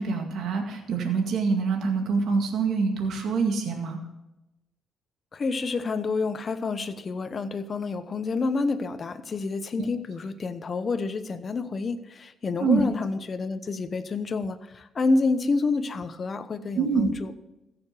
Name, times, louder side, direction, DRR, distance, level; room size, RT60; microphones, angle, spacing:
voice 1, 0.0-4.0 9.8-9.9 12.6-12.9 16.8-17.1, right 4 dB, 70° right, 3 dB, 2.0 m, -25 dB
voice 2, 5.3-17.3, left 3 dB, 40° left, 10 dB, 0.9 m, -28 dB
15.0 x 6.9 x 5.8 m, 0.95 s
cardioid pair, 90°, 0 cm